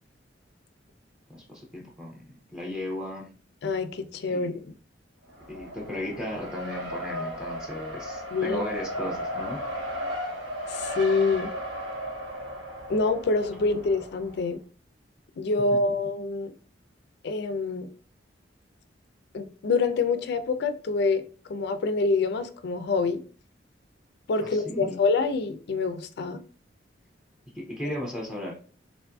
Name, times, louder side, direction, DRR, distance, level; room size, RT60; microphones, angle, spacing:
voice 1, 1.3-3.3 4.3-4.6 5.5-9.6 24.4-25.0 27.5-28.6, left 1 dB, 5° right, 0.5 m, -35 dB
voice 2, 3.6-4.5 8.3-8.6 10.7-11.5 12.9-14.6 15.4-16.5 17.2-17.9 19.3-21.2 21.5-23.2 24.3-26.4, left 3 dB, 60° left, 0.4 m, -26 dB
Race car auto racing, 5.3-14.4, equal, 80° right, 1.4 m, -35 dB
3.6 x 2.5 x 2.2 m
head